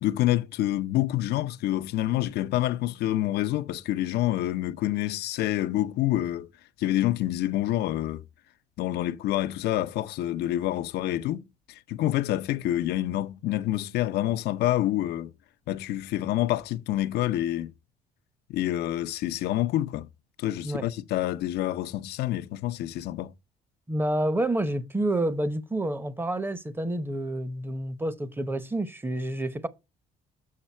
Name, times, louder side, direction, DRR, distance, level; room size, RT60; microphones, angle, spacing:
voice 1, 0.0-6.5 6.8-8.2 8.8-11.4 11.7-15.3 15.7-17.7 18.5-20.1 20.4-23.3, left 14 dB, 75° left, 0.6 m, -27 dB
voice 2, 23.9-29.7, right 1 dB, 10° right, 0.8 m, -29 dB
7.4 x 6.6 x 4.3 m
cardioid pair, 110°, 17 cm